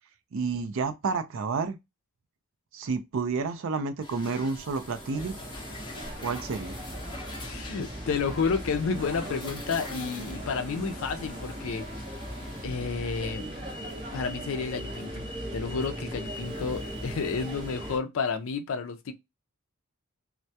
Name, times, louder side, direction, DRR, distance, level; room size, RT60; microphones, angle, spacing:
voice 1, 0.3-1.8 2.7-5.4 6.2-6.8, right 4 dB, 60° right, 0.4 m, -30 dB
sound 1, 4.0-12.6, left 2 dB, 20° left, 0.7 m, -44 dB
sound 2, 4.6-18.0, equal, 20° right, 0.7 m, -38 dB
voice 2, 7.4-11.8 12.6-13.5 14.1-15.3 15.5-19.1, left 5 dB, 60° left, 0.4 m, -31 dB
2.2 x 2.1 x 2.7 m
head